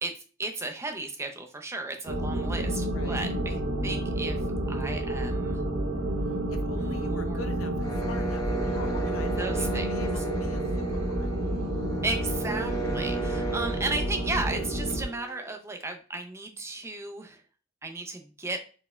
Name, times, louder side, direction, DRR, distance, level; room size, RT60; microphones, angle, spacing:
voice 1, 0.0-4.4 4.7-5.6 6.7-7.5 9.4-9.9 10.2-10.3 12.0-17.4 17.8-18.6, right 2 dB, 15° right, 4 dB, 0.4 m, -35 dB
sound 1, 2.1-15.0, right 1 dB, 85° right, 0.7 m, -30 dB
voice 2, 2.9-3.2 6.3-11.4, left 3 dB, 85° left, 7 dB, 0.6 m, -43 dB
sound 2, 7.8-15.6, right 4 dB, 15° left, 0.9 m, -36 dB
4.2 x 3.2 x 2.2 m, 0.39 s
head